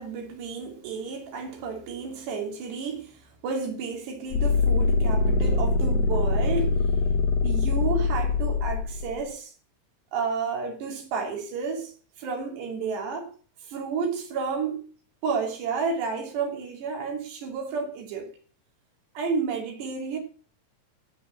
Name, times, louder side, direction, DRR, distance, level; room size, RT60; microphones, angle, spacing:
voice 1, 0.0-3.2 3.4-6.8 7.4-9.5 10.1-11.9 12.2-13.3 13.7-14.8 15.2-18.3 19.1-20.2, right 5 dB, 60° right, 4.9 m, -31 dB
sound 1, 4.3-9.2, left 4 dB, 90° left, 2.0 m, -23 dB
15.5 x 8.9 x 7.5 m
omnidirectional pair, 5.9 m